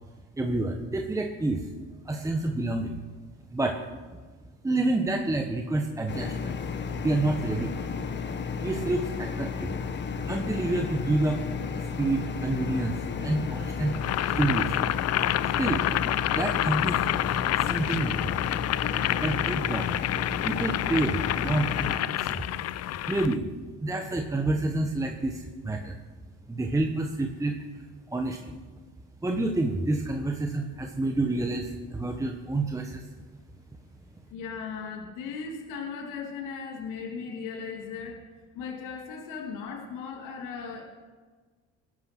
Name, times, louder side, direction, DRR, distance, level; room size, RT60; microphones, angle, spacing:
voice 1, 0.4-1.7 2.1-3.0 3.5-3.8 4.6-6.5 7.0-7.9 8.6-9.7 10.3-11.4 12.0-12.9 13.2-14.0 14.3-14.8 15.4-15.9 16.3-17.2 17.6-18.3 19.1-19.9 20.4-22.4 23.1-23.4 23.8-26.0 26.5-27.8 28.1-28.6 29.2-33.0, right 2 dB, 10° right, 3 dB, 1.2 m, -28 dB
sound 1, 6.1-22.0, left 5 dB, 35° left, 1.2 m, -33 dB
Boiling, 13.9-23.4, left 14 dB, 55° left, 0.6 m, -28 dB
voice 2, 34.3-38.2 38.5-40.8, left 5 dB, 90° left, 1 dB, 2.6 m, -37 dB
19.5 x 11.0 x 6.1 m, 1.4 s
cardioid pair, 120°, 31 cm